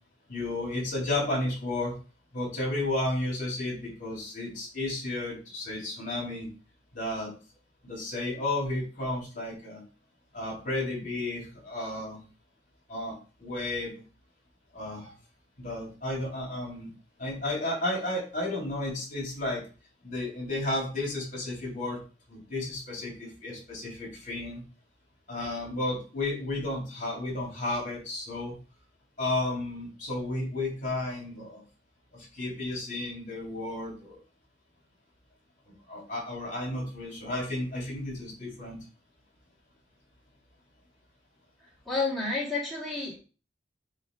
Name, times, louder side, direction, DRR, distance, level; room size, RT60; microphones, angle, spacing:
voice 1, 0.3-1.9 2.3-6.5 6.9-7.3 7.8-9.8 10.3-12.2 12.9-13.9 14.7-15.1 15.6-16.9 17.2-19.6 20.0-22.0 22.3-24.6 25.3-28.5 29.2-31.6 32.1-34.2 35.9-38.8, left 2 dB, 45° left, -3 dB, 3.8 m, -32 dB
voice 2, 41.9-43.2, left 3 dB, ahead, -6 dB, 2.2 m, -30 dB
7.7 x 3.2 x 4.9 m, 0.35 s
head